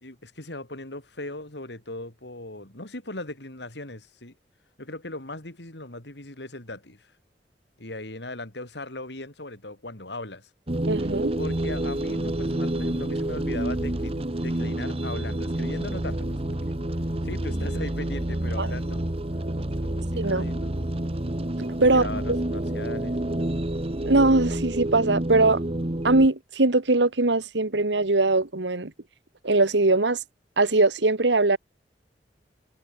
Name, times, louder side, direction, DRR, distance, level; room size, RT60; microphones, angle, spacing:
voice 1, 0.0-4.3 4.8-7.1 7.8-10.5 11.3-16.7 17.2-19.0 19.8-20.9 21.7-23.5, left 2 dB, 70° left, 4.2 m, -38 dB
sound 1, 10.7-26.3, right 1 dB, 35° right, 1.4 m, -28 dB
voice 2, 10.9-11.3 18.6-18.7 20.2-20.5 21.6-22.0 24.1-25.6 26.0-28.9 29.4-30.2 30.6-31.6, right 2 dB, 85° right, 1.6 m, -21 dB
head